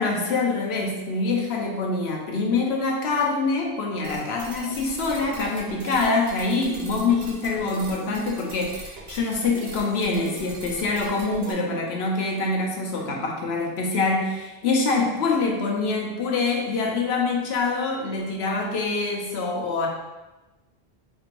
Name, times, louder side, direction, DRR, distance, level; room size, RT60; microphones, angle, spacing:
voice 1, 0.0-19.9, left 3 dB, 90° left, 0 dB, 1.0 m, -25 dB
sound 1, 4.0-11.5, right 2 dB, 50° right, 0.6 m, -40 dB
4.3 x 3.1 x 2.5 m, 1.1 s
omnidirectional pair, 1.0 m